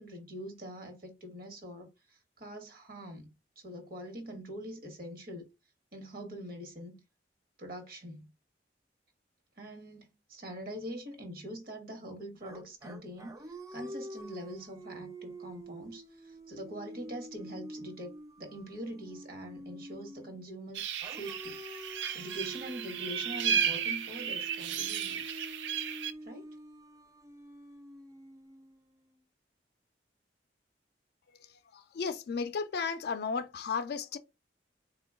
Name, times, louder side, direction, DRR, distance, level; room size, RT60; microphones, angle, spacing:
voice 1, 0.0-5.5 5.9-7.0 7.6-8.3 9.6-20.8 21.1-21.6 22.1-25.5 26.2-26.5, equal, 55° right, 1.0 m, -44 dB
sound 1, 12.4-20.5 21.0-29.1, right 1 dB, 20° right, 0.4 m, -47 dB
sound 2, 20.7-26.1, right 8 dB, 85° right, 0.4 m, -34 dB
voice 2, 31.7-34.2, left 5 dB, 60° left, 0.4 m, -34 dB
3.7 x 2.2 x 3.4 m
head